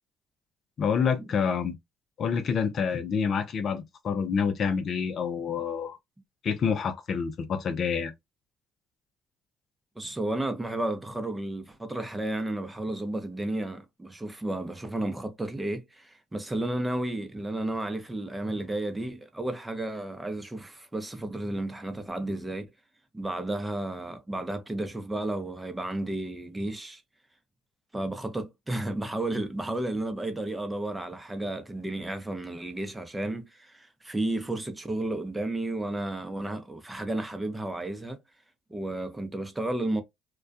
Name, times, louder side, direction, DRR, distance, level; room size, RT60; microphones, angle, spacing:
voice 1, 0.8-1.7 2.2-6.0 6.4-8.1, left 6 dB, 55° left, 0.5 m, -27 dB
voice 2, 10.0-22.7 23.1-27.0 27.9-38.2 38.7-40.0, right 1 dB, 15° right, 0.7 m, -32 dB
2.2 x 2.2 x 2.5 m
supercardioid pair, 65°, 0 cm